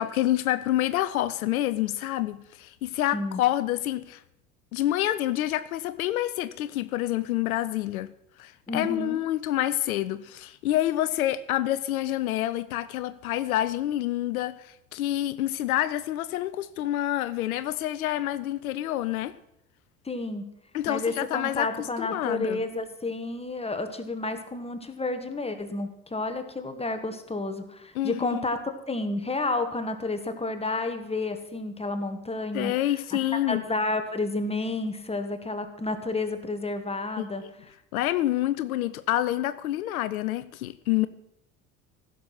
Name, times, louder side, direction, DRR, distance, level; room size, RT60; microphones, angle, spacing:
voice 1, 0.0-4.2 4.7-8.1 8.4-19.4 20.7-22.6 27.9-28.4 32.5-33.6 37.2-37.3 37.9-41.1, left 14 dB, 70° left, 0.7 m, -27 dB
voice 2, 8.7-9.2 20.0-20.4 20.9-32.7 33.5-37.4, left 2 dB, 15° left, 1.6 m, -30 dB
15.5 x 6.9 x 6.0 m
figure-of-eight pair, 65°, 44 cm